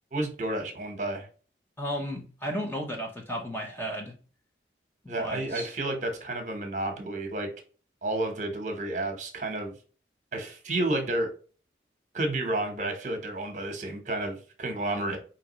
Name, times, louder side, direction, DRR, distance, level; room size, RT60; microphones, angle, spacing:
voice 1, 0.1-1.3 5.1-7.5 8.0-9.7 10.3-11.3 12.1-15.2, right 2 dB, 45° right, 4 dB, 1.1 m, -31 dB
voice 2, 1.8-4.1 5.0-5.7, equal, 10° left, 1 dB, 0.7 m, -34 dB
4.9 x 3.0 x 3.0 m, 0.37 s
head